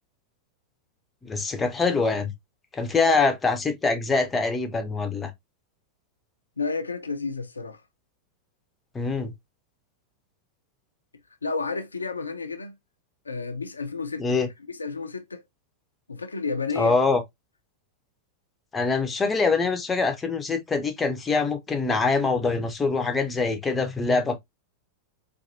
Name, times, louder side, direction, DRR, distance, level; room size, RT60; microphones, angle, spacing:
voice 1, 1.2-2.3 2.7-5.3 8.9-9.3 14.2-14.5 16.8-17.2 18.7-24.4, left 4 dB, 15° left, 0.7 m, -24 dB
voice 2, 6.6-7.8 11.4-12.8 13.3-14.4 14.7-15.4 16.1-16.9, left 4 dB, 80° left, 0.4 m, -31 dB
4.1 x 2.6 x 2.6 m
figure-of-eight pair, 90°, 0 cm